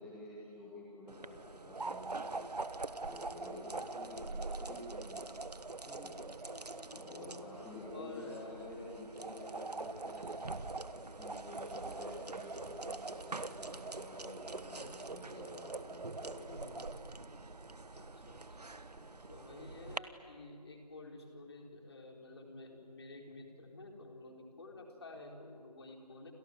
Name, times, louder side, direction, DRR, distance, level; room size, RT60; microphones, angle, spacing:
voice 1, 0.0-2.5 3.0-5.2 5.8-6.2 6.9-16.6 18.9-19.1, left 1 dB, 5° left, -6 dB, 1.7 m, -50 dB
sound 1, 1.1-20.0, right 3 dB, 70° right, 1.3 m, -44 dB
voice 2, 6.4-7.3 7.9-8.4 14.7-15.6 16.5-17.2 17.9-18.6 19.3-26.3, left 2 dB, 40° left, 2 dB, 4.0 m, -52 dB
29.5 x 27.5 x 7.3 m, 2.3 s
figure-of-eight pair, 165°, 21 cm